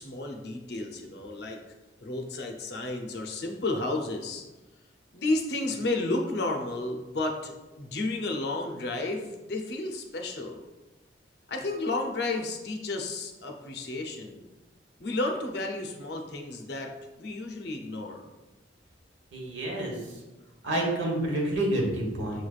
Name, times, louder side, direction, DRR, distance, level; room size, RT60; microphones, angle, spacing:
voice 1, 0.0-1.6 2.0-4.4 5.1-10.6 11.5-14.5 15.0-16.9 17.2-18.3, left 2 dB, 65° left, 3 dB, 0.6 m, -32 dB
voice 2, 19.3-19.9 20.6-22.5, right 1 dB, 80° right, -1 dB, 1.2 m, -28 dB
6.5 x 3.2 x 2.4 m, 1.1 s
head